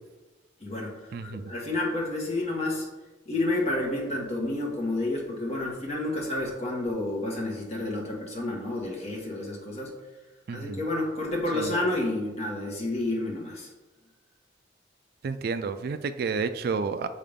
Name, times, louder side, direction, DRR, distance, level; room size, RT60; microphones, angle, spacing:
voice 1, 0.6-2.9 3.2-9.9 10.5-13.7, left 2 dB, 35° left, -2 dB, 1.5 m, -30 dB
voice 2, 1.1-1.5 10.5-10.8 11.5-11.7 15.2-17.1, right 5 dB, 55° right, 11 dB, 0.3 m, -30 dB
6.6 x 5.5 x 3.5 m, 1.2 s
head